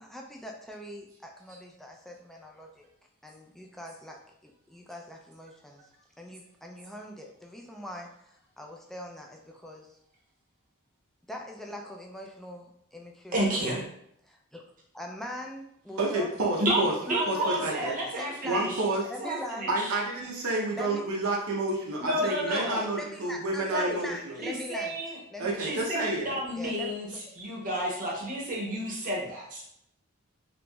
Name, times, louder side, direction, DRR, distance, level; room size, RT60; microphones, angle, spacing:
voice 1, 0.0-2.9 3.2-5.9 6.2-10.0 11.3-13.4 14.3-14.6 14.9-16.3 17.1-18.7 19.1-19.7 20.7-21.1 22.2-25.0 25.3-25.6 26.6-27.2, left 1 dB, ahead, 0 dB, 0.3 m, -42 dB
voice 2, 13.3-13.8 16.6-18.8 19.2-20.0 22.0-22.8 23.7-24.1 24.4-25.2 25.6-29.6, right 1 dB, 40° right, -2 dB, 0.8 m, -31 dB
voice 3, 16.0-16.9 17.3-18.0 18.4-19.0 19.7-24.4 25.4-26.4, right 2 dB, 80° right, -2 dB, 0.6 m, -29 dB
2.9 x 2.9 x 2.2 m, 0.72 s
head